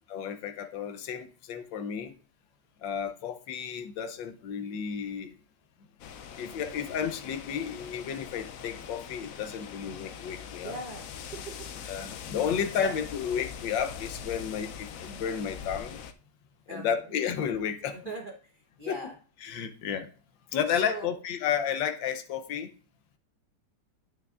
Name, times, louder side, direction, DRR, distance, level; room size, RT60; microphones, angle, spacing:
voice 1, 0.1-2.1 2.8-5.3 6.4-10.8 11.9-16.0 16.7-18.0 18.9-19.0 19.4-20.1 20.5-22.7, left 8 dB, 85° left, 8 dB, 1.5 m, -32 dB
sound 1, 6.0-16.1, left 7 dB, 70° left, 0.8 m, -42 dB
voice 2, 10.6-11.5 12.8-12.9 16.7-17.1 17.9-19.2 20.7-21.1, right 2 dB, 35° right, 1 dB, 0.9 m, -40 dB
9.2 x 8.4 x 2.5 m, 0.39 s
omnidirectional pair, 2.0 m